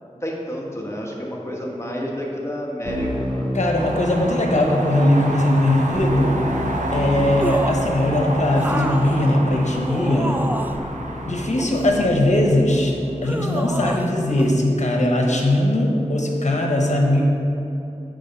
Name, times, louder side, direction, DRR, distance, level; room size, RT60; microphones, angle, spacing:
voice 1, 0.2-3.5, equal, 20° left, -2 dB, 1.2 m, -29 dB
Keyboard (musical), 2.9-4.5 5.9-14.3, equal, 40° right, 0.9 m, -31 dB
voice 2, 3.5-6.4 6.9-10.4 11.2-12.9 13.2-17.2, left 1 dB, 65° left, 0 dB, 1.0 m, -20 dB
sound 1, 3.7-11.5, right 1 dB, 80° right, 0.7 m, -29 dB
sound 2, 7.4-7.9 8.6-10.9 11.5-12.6 13.2-14.1 14.4-14.5, right 1 dB, 15° right, 0.4 m, -29 dB
6.6 x 4.6 x 5.3 m, 2.9 s
wide cardioid pair, 55°, 13 cm